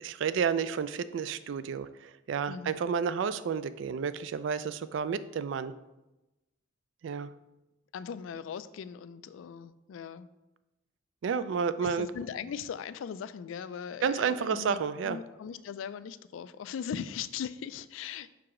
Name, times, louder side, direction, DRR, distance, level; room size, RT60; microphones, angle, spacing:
voice 1, 0.0-5.7 7.0-7.3 11.2-12.1 14.0-15.2, right 6 dB, 70° right, 14 dB, 0.3 m, -31 dB
voice 2, 2.5-2.8 7.9-10.3 11.8-18.3, left 7 dB, 85° left, 15 dB, 0.3 m, -39 dB
5.9 x 4.7 x 3.7 m, 1.0 s
head